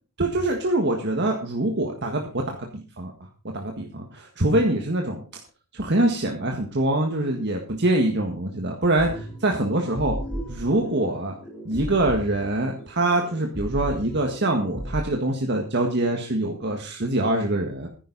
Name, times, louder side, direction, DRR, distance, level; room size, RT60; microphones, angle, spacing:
voice 1, 0.2-3.1 3.5-5.2 5.7-10.2 10.5-11.3 11.7-17.9, right 1 dB, 50° right, 2 dB, 1.8 m, -24 dB
sound 1, 9.0-15.0, equal, 5° left, 4.2 m, -35 dB
14.5 x 10.5 x 4.1 m, 0.36 s
head